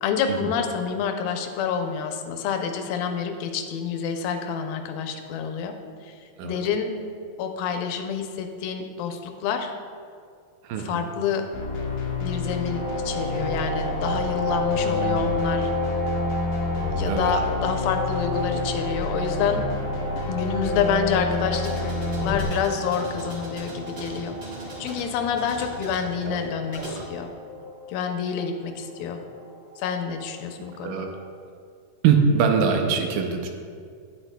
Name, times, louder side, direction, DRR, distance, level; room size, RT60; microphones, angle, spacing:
voice 1, 0.0-5.8 6.0-6.2 6.4-6.9 7.4-9.7 10.8-11.5 12.2-15.7 16.9-19.7 20.3-21.9 22.2-24.4 24.8-27.3 27.9-29.2 29.8-31.1, left 6 dB, 85° left, 5 dB, 2.4 m, -28 dB
voice 2, 10.6-11.0 17.1-17.5 26.3-26.4 26.8-27.0 30.8-31.1 32.0-33.5, right 6 dB, 80° right, 4 dB, 2.2 m, -23 dB
sound 1, 11.5-22.4, left 2 dB, 70° left, 1.5 m, -29 dB
sound 2, 12.6-31.2, left 2 dB, 50° left, 1.7 m, -33 dB
sound 3, 21.3-27.0, right 1 dB, 45° right, 2.0 m, -39 dB
10.0 x 9.0 x 2.2 m, 2.2 s
omnidirectional pair, 4.1 m